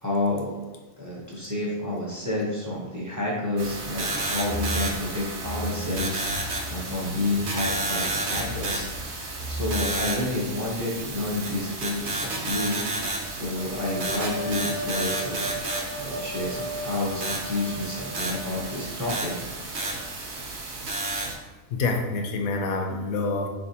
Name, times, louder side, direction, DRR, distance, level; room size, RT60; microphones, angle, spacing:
voice 1, 0.0-0.6 1.0-6.2 6.7-12.8 13.3-15.5 16.0-19.3, left 2 dB, 20° right, -6 dB, 0.6 m, -30 dB
sound 1, 3.6-21.3, right 2 dB, 60° right, 0.9 m, -32 dB
sound 2, 3.7-10.6, right 1 dB, 80° right, 1.1 m, -36 dB
sound 3, 13.6-19.4, right 1 dB, 30° left, 0.5 m, -37 dB
voice 2, 21.7-23.5, left 3 dB, 80° left, 3 dB, 1.0 m, -27 dB
4.0 x 3.4 x 2.8 m, 1.2 s
omnidirectional pair, 1.5 m